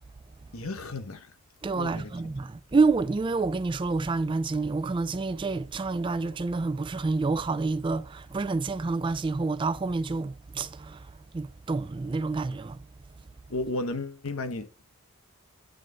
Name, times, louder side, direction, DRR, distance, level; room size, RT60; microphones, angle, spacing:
voice 1, 0.5-1.4 1.7-2.1 13.5-14.8, left 2 dB, 75° left, 1.1 m, -34 dB
voice 2, 1.6-12.8, right 3 dB, 20° right, 0.3 m, -28 dB
9.2 x 3.9 x 3.5 m
head